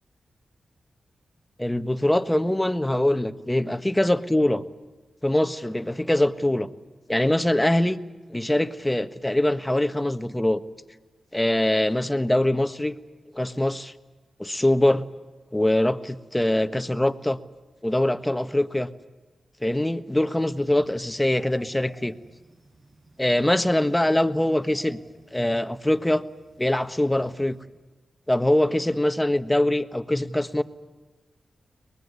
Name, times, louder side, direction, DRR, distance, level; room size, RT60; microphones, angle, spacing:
voice 1, 1.6-4.6 5.2-6.7 7.1-8.0 8.3-10.6 11.3-12.9 13.3-13.9 14.4-15.1 15.5-17.4 17.8-18.9 19.6-22.1 23.2-25.0 25.3-26.2 26.6-27.6 28.3-30.6, left 1 dB, 10° left, 10 dB, 1.4 m, -23 dB
sound 1, 20.5-27.6, right 2 dB, 50° right, 6.8 m, -55 dB
23.5 x 20.5 x 9.6 m, 1.2 s
cardioid pair, 55°, 0 cm